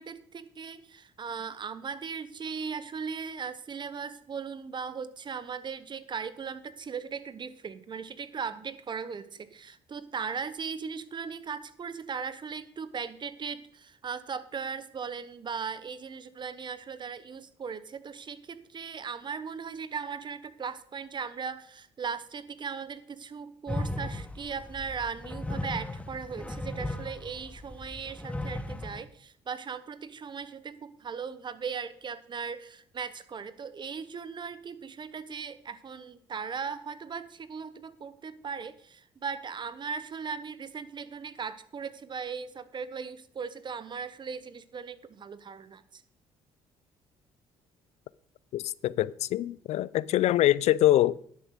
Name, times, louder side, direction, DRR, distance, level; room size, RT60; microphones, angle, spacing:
voice 1, 0.0-46.0, right 6 dB, 40° right, 14 dB, 1.0 m, -38 dB
sound 1, 23.7-29.0, left 1 dB, 10° left, 1.1 m, -36 dB
voice 2, 48.5-51.2, left 14 dB, 65° left, 21 dB, 0.4 m, -24 dB
11.0 x 7.1 x 6.5 m, 0.64 s
supercardioid pair, 65°, 12 cm